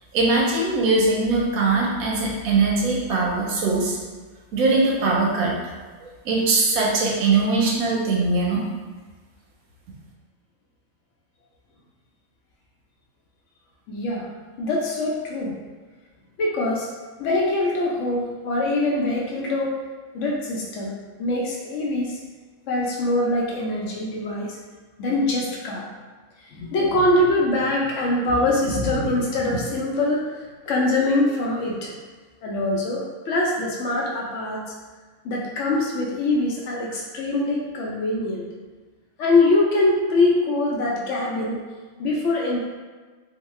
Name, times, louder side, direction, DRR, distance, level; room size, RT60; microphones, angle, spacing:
voice 1, 0.1-4.0 4.5-5.5 6.2-8.6, right 3 dB, 85° right, -3 dB, 1.1 m, -21 dB
voice 2, 13.9-14.3 14.6-15.5 16.4-16.9 17.2-19.7 20.1-22.2 22.7-24.6 25.0-25.8 26.5-31.9 32.4-34.6 35.2-38.5 39.2-41.6 42.0-42.6, left 2 dB, 70° left, -3 dB, 0.8 m, -23 dB
3.0 x 2.1 x 3.0 m, 1.4 s
omnidirectional pair, 1.5 m